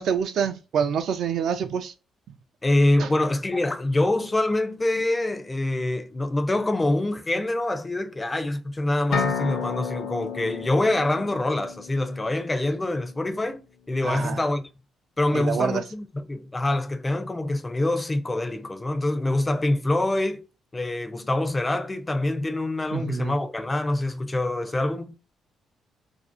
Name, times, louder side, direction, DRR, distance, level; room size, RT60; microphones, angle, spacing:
voice 1, 0.0-1.9 3.0-3.1 14.0-14.4 15.3-15.8 22.9-23.4, right 7 dB, 70° right, 0.3 m, -26 dB
voice 2, 2.6-13.6 13.9-14.6 15.2-20.4 20.7-25.1, left 1 dB, 20° left, 0.4 m, -25 dB
sound 1, 9.1-12.9, left 6 dB, 70° left, 0.6 m, -32 dB
2.5 x 2.0 x 2.4 m
cardioid pair, 90°, 0 cm